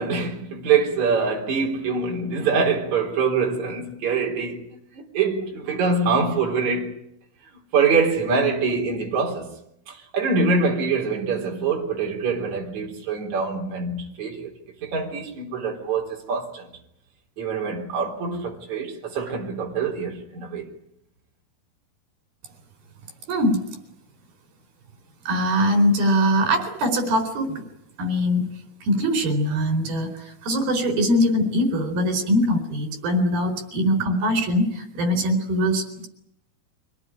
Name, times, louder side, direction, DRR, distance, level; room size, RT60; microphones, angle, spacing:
voice 1, 0.0-4.6 4.9-7.0 7.7-9.6 9.9-14.5 14.8-16.7 17.4-20.7, right 4 dB, 50° right, 4.8 m, -24 dB
voice 2, 23.3-23.6 25.3-27.6 28.0-28.5 28.8-36.1, equal, 75° right, 5.9 m, -22 dB
25.0 x 18.0 x 9.9 m
omnidirectional pair, 4.4 m